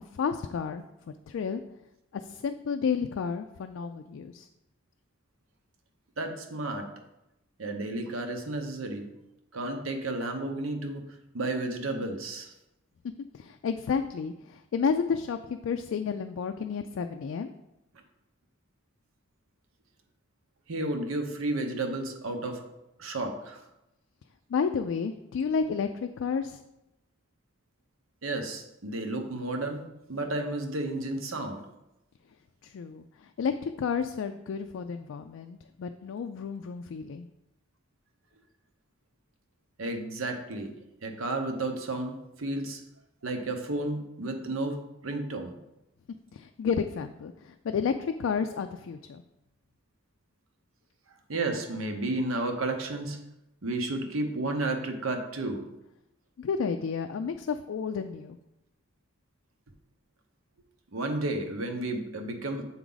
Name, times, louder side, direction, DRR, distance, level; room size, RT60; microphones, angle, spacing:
voice 1, 0.1-0.8 1.3-1.6 2.1-4.5 13.3-17.5 24.5-26.6 32.6-37.3 46.3-49.2 56.4-58.4, left 6 dB, 75° left, 6 dB, 0.3 m, -31 dB
voice 2, 6.2-6.9 7.6-9.1 9.5-11.0 11.3-12.5 20.7-22.6 23.0-23.6 28.2-29.8 30.1-31.6 39.8-40.7 41.0-42.8 43.2-44.8 45.0-45.5 51.3-53.2 53.6-55.6 60.9-62.6, right 2 dB, 85° right, 5 dB, 0.9 m, -32 dB
7.1 x 4.7 x 3.9 m, 0.91 s
head